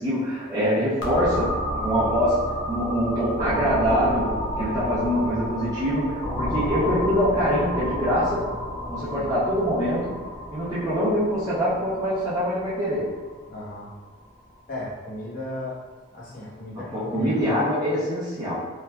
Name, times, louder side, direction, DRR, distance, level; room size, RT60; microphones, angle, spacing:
voice 1, 0.0-1.6 1.8-8.5 8.9-10.2 10.5-13.1 16.7-18.6, equal, 20° right, -11 dB, 0.6 m, -24 dB
sound 1, 1.0-14.6, equal, 75° left, 0.7 m, -31 dB
voice 2, 13.5-13.9 14.7-15.8 16.1-17.6, left 1 dB, 45° left, -7 dB, 0.9 m, -35 dB
3.1 x 2.3 x 2.3 m, 1.4 s
head